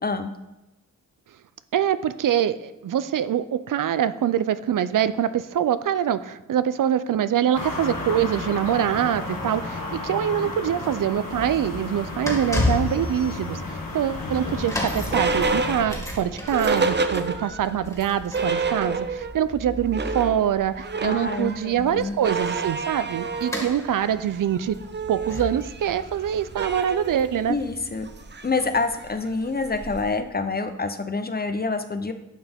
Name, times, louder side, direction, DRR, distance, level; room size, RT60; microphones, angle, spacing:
voice 1, 0.0-0.3 21.0-22.2 27.5-28.1 28.4-32.1, left 3 dB, 30° left, 9 dB, 0.6 m, -27 dB
voice 2, 1.7-24.8 25.1-27.6, right 9 dB, 70° right, 14 dB, 0.5 m, -24 dB
sound 1, 7.5-15.9, left 2 dB, 80° left, 1.7 m, -33 dB
closingmyfrondoor(mono), 11.2-28.1 28.8-28.9, left 2 dB, 10° left, 2.1 m, -34 dB
sound 2, 14.1-17.7 18.1-18.2 18.3-19.4 19.7-30.2, right 4 dB, 35° right, 0.6 m, -29 dB
10.5 x 5.9 x 3.5 m, 1.0 s
wide cardioid pair, 85°, 33 cm